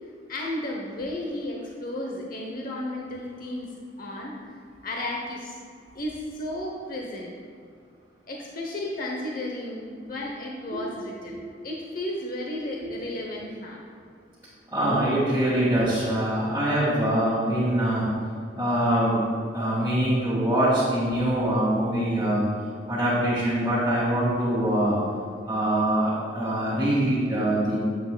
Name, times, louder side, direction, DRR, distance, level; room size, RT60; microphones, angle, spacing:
voice 1, 0.3-3.7 4.0-4.6 4.8-5.6 5.9-7.3 8.3-11.4 11.6-13.8, left 1 dB, 50° left, -1 dB, 0.8 m, -33 dB
voice 2, 14.7-18.1 18.6-19.2 19.5-22.4 22.9-25.0 25.5-27.9, right 1 dB, 15° right, -11 dB, 1.8 m, -23 dB
9.6 x 8.3 x 2.2 m, 2.2 s
head